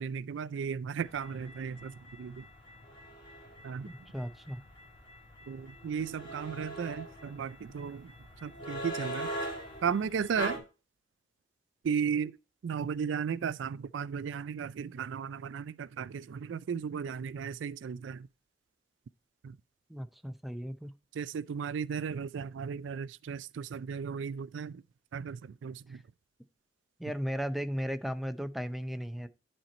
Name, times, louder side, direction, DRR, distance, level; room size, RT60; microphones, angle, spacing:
voice 1, 0.0-2.4 3.6-3.9 5.5-8.1 8.4-9.3 9.8-10.6 11.8-12.4 12.6-18.3 19.4-19.6 21.1-24.8 25.1-26.0, right 6 dB, 80° right, 0.4 m, -35 dB
sound 1, 1.0-10.6, equal, 25° left, 2.3 m, -42 dB
voice 2, 3.8-4.6 19.9-20.9 25.9-26.0 27.0-29.3, equal, ahead, 0.5 m, -36 dB
10.5 x 4.4 x 4.2 m
head